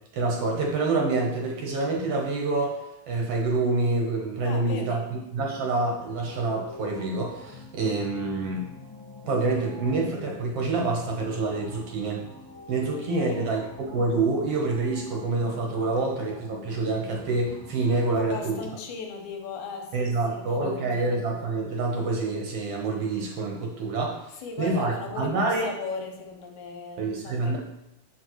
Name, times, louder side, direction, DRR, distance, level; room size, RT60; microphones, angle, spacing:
voice 1, 0.1-2.8 3.1-8.7 9.2-12.2 12.7-18.6 19.9-24.2 24.6-25.7 27.0-27.6, right 3 dB, 60° right, -1 dB, 1.9 m, -27 dB
voice 2, 4.4-5.1 12.9-13.5 18.2-21.1 24.4-27.6, left 4 dB, 85° left, 3 dB, 2.4 m, -38 dB
sound 1, 5.8-18.7, left 3 dB, 15° left, 0.8 m, -45 dB
7.4 x 6.3 x 3.1 m, 0.86 s
omnidirectional pair, 3.3 m